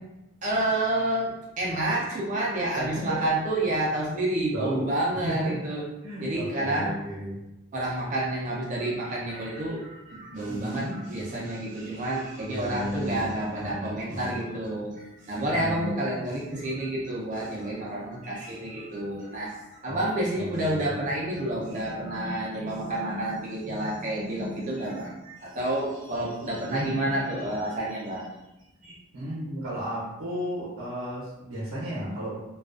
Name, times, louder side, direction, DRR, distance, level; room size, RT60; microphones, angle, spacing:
voice 1, 0.4-5.8 6.2-6.9 7.7-28.3 28.8-29.0, right 1 dB, 35° right, -5 dB, 0.5 m, -29 dB
voice 2, 2.7-3.2 4.5-4.9 5.2-5.6 6.0-7.4 10.5-11.0 12.4-14.4 15.4-15.9 19.9-20.1 20.3-20.9 29.1-32.4, equal, 70° right, -7 dB, 0.6 m, -33 dB
2.3 x 2.2 x 2.4 m, 0.94 s
head